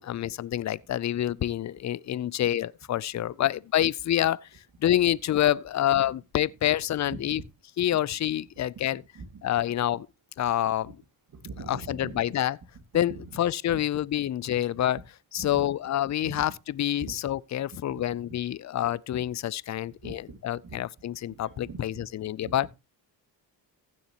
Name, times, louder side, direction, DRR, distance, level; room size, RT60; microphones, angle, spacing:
voice 1, 0.0-4.5 4.8-7.4 7.8-9.0 9.4-10.1 10.4-10.9 11.7-12.6 12.9-15.0 15.3-22.7, left 12 dB, 45° left, 0.5 m, -27 dB
voice 2, 7.0-7.4 8.9-9.7 11.4-12.2 12.7-12.8 13.1-13.4 13.7-13.8 15.4-15.7 16.2-16.4 17.0-17.2 17.6-18.0 19.9-20.4 20.6-20.8 21.3-22.7, right 4 dB, 50° right, 2.3 m, -43 dB
15.5 x 7.2 x 2.9 m
cardioid pair, 80°, 41 cm